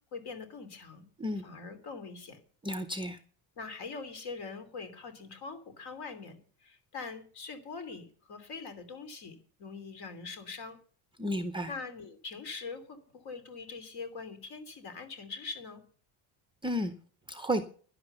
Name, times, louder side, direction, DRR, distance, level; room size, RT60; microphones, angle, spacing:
voice 1, 0.1-1.1 1.4-2.4 3.6-10.8 11.7-15.8, left 4 dB, 50° left, 10 dB, 3.1 m, -43 dB
voice 2, 2.6-3.2 11.2-11.7 16.6-16.9 17.3-17.6, equal, 10° right, 8 dB, 0.6 m, -32 dB
11.5 x 10.5 x 6.9 m, 0.44 s
cardioid pair, 165°, 50 cm